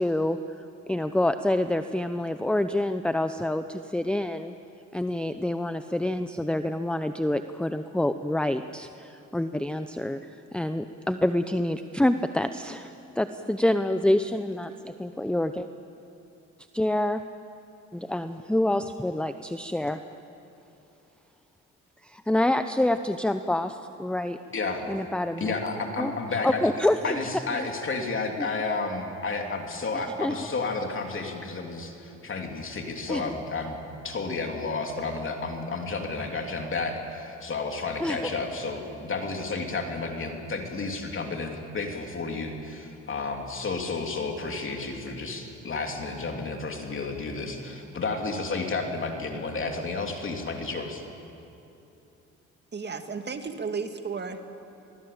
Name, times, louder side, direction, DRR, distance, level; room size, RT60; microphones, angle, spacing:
voice 1, 0.0-4.5 4.9-15.7 16.7-17.2 17.9-20.0 22.0-24.4 24.9-25.5 26.0-26.1 26.4-27.2 27.5-27.7 30.2-30.4 33.1-33.2 38.0-38.2, left 1 dB, 5° left, 9 dB, 0.7 m, -27 dB
voice 2, 24.5-24.8 25.4-26.7 27.0-33.8 34.0-51.0, left 3 dB, 40° left, 2 dB, 3.2 m, -31 dB
voice 3, 52.7-54.4, right 5 dB, 35° right, 6 dB, 2.1 m, -33 dB
25.5 x 19.5 x 8.7 m, 2.9 s
cardioid pair, 90°, 30 cm